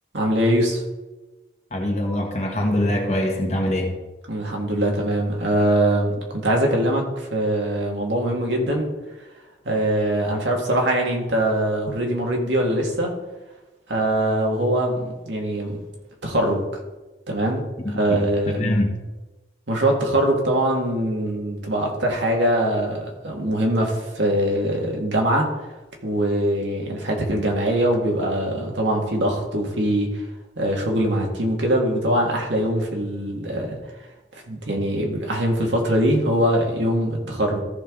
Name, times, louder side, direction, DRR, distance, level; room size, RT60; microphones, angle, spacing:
voice 1, 0.1-0.8 4.3-8.9 9.7-13.1 13.9-15.8 16.2-16.6 17.3-18.6 19.7-25.5 26.0-30.1 30.6-33.8 34.5-37.6, right 1 dB, 85° right, 0 dB, 1.9 m, -22 dB
voice 2, 1.7-4.0 18.1-18.9, left 1 dB, 40° left, 0 dB, 1.5 m, -23 dB
14.0 x 5.6 x 3.8 m, 1.1 s
head